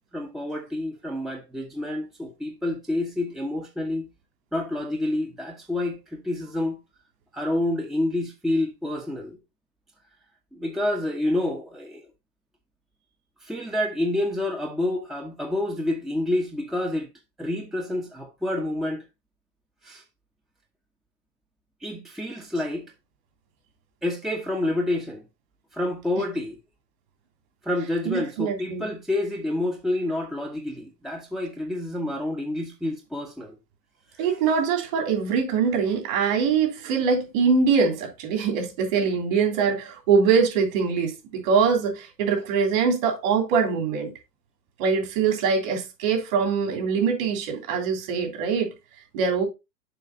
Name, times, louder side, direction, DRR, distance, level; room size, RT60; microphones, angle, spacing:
voice 1, 0.1-4.1 4.5-6.8 7.3-9.4 10.5-12.1 13.4-17.1 17.4-19.0 19.8-20.0 21.8-22.8 24.0-25.2 25.7-26.6 27.6-33.6 34.1-34.3, left 1 dB, ahead, 0.9 m, -28 dB
voice 2, 28.0-28.9 34.2-44.1 44.8-48.7 49.1-49.5, right 5 dB, 55° right, 3.2 m, -23 dB
6.9 x 4.9 x 4.0 m
figure-of-eight pair, 95°, 49 cm